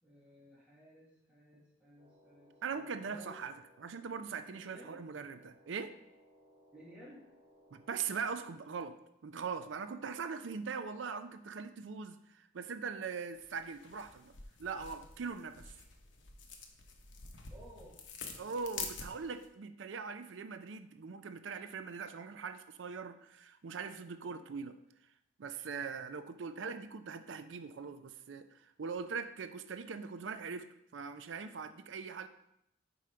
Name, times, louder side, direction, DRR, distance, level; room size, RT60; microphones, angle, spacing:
voice 1, 0.0-3.4 4.5-5.0 6.7-7.2 17.5-18.0 18.3-18.9, equal, 5° right, -7 dB, 1.5 m, -57 dB
sound 1, 2.0-8.3, equal, 30° right, 2.0 m, -64 dB
voice 2, 2.6-6.0 7.7-14.3 14.6-15.7 18.4-24.8 25.4-32.3, right 5 dB, 75° right, 10 dB, 0.5 m, -41 dB
sound 2, 13.3-19.5, left 5 dB, 75° left, 0.8 m, -48 dB
5.3 x 4.9 x 4.3 m, 0.79 s
head